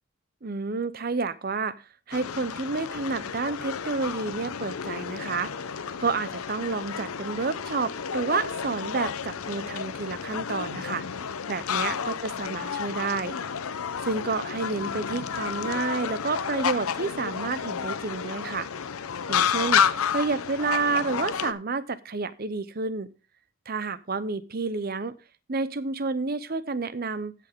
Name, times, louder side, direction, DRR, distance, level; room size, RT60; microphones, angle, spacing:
voice 1, 0.4-1.7 2.1-5.5 6.0-11.0 11.5-13.3 14.0-18.7 19.3-19.8 20.1-23.1 23.7-25.2 25.5-27.3, right 4 dB, 45° right, 15 dB, 0.7 m, -30 dB
sound 1, 2.1-21.5, left 7 dB, 90° left, 0.7 m, -31 dB
16.0 x 5.8 x 3.6 m, 0.30 s
head